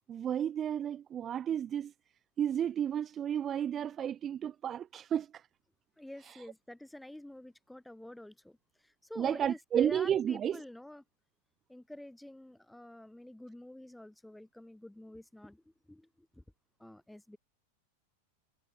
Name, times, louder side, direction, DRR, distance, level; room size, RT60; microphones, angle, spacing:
voice 1, 0.1-1.9 2.4-5.4 6.3-6.4 9.2-10.6, right 9 dB, 25° right, 0.4 m, -32 dB
voice 2, 6.0-11.0 11.7-16.4 16.8-17.4, left 1 dB, 5° left, 1.7 m, -48 dB
figure-of-eight pair, 90°, 0 cm